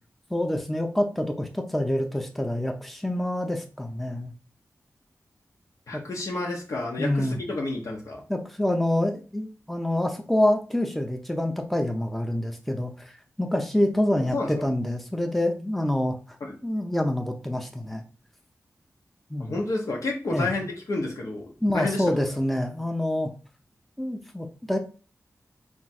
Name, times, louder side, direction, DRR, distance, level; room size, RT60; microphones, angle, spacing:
voice 1, 0.3-4.3 5.9-6.0 7.0-7.4 8.3-13.1 13.4-16.2 16.6-18.0 19.3-19.6 20.3-20.5 21.6-23.3 24.0-24.8, left 1 dB, ahead, 4 dB, 0.6 m, -26 dB
voice 2, 5.9-8.2 14.3-14.6 16.4-16.5 19.4-22.0, left 2 dB, 65° left, -1 dB, 0.8 m, -30 dB
3.5 x 2.4 x 4.2 m, 0.36 s
wide cardioid pair, 75°, 6 cm